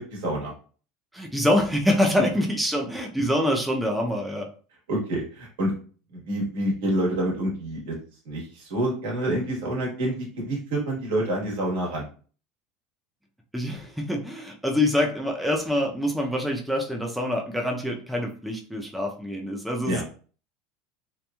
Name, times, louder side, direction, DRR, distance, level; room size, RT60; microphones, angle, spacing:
voice 1, 0.1-0.5 4.9-5.7 6.1-8.0 8.2-12.1 19.8-20.0, right 1 dB, 85° right, -2 dB, 1.3 m, -27 dB
voice 2, 1.1-4.5 13.5-20.0, left 1 dB, ahead, 0 dB, 0.4 m, -25 dB
2.9 x 2.4 x 2.2 m, 0.40 s
supercardioid pair, 130°, 0 cm